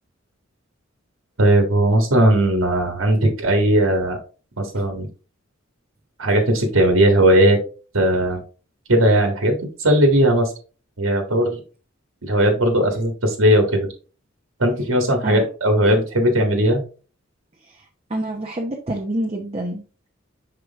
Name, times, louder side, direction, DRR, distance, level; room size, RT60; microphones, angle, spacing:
voice 1, 1.4-4.2 4.6-5.1 6.2-7.6 7.9-8.4 8.9-10.5 11.0-11.5 12.2-13.9 14.6-16.8, right 1 dB, 85° right, 4 dB, 1.6 m, -17 dB
voice 2, 17.6-20.1, right 1 dB, 30° right, 1 dB, 0.8 m, -28 dB
6.3 x 4.8 x 3.5 m, 0.36 s
head